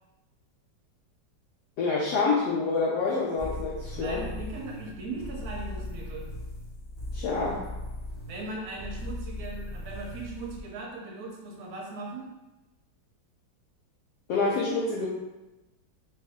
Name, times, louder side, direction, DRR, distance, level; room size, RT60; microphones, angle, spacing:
voice 1, 1.8-4.2 7.1-7.6 14.3-15.1, left 4 dB, 70° left, -5 dB, 1.0 m, -27 dB
sound 1, 3.4-10.6, left 1 dB, 35° left, 0.7 m, -38 dB
voice 2, 3.9-6.3 8.3-12.3, right 2 dB, 65° right, -1 dB, 1.1 m, -38 dB
3.2 x 2.6 x 3.5 m, 1.0 s
omnidirectional pair, 2.0 m